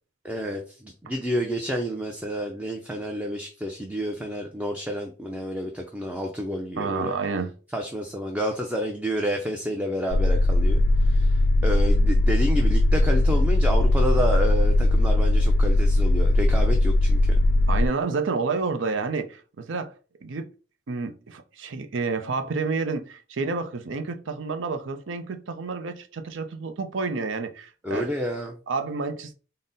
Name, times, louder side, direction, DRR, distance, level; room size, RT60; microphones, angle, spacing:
voice 1, 0.2-7.1 7.7-17.2 27.8-28.6, equal, 5° right, 0.4 m, -29 dB
voice 2, 6.8-7.5 17.7-19.9 20.2-20.5 20.9-28.0 28.7-29.3, right 4 dB, 75° right, 0.5 m, -29 dB
sound 1, 10.1-17.9, left 1 dB, 60° left, 0.3 m, -19 dB
3.8 x 2.0 x 3.9 m
head